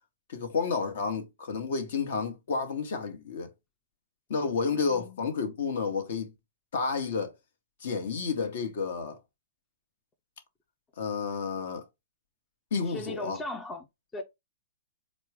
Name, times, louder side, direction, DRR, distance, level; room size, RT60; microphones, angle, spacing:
voice 1, 0.3-3.5 4.3-6.3 6.7-7.3 7.8-9.2 11.0-11.8 12.7-13.4, left 5 dB, 60° left, 1.1 m, -31 dB
voice 2, 12.9-13.9 14.1-14.2, left 2 dB, 15° left, 0.5 m, -37 dB
4.4 x 2.1 x 4.6 m
figure-of-eight pair, 115°, 0 cm